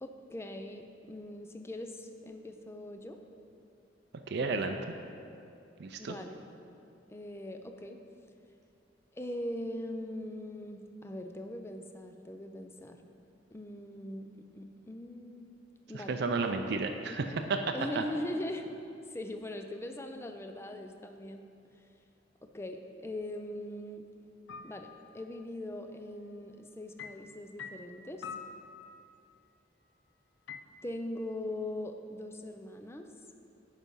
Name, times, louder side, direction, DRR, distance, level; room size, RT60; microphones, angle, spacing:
voice 1, 0.0-3.2 4.4-4.8 6.0-6.4 7.1-8.0 9.1-13.0 13.5-15.6 15.9-16.2 17.7-18.7 19.1-21.4 22.5-24.1 24.6-28.3 30.8-33.1, left 1 dB, 15° left, 5 dB, 0.4 m, -41 dB
voice 2, 4.3-4.8 5.8-6.1 15.9-17.4 18.0-18.1, right 4 dB, 60° right, 5 dB, 0.4 m, -32 dB
sound 1, 24.5-25.2 27.0-29.3 30.5-30.6, left 6 dB, 70° left, 0.4 m, -46 dB
9.7 x 4.9 x 5.4 m, 2.6 s
head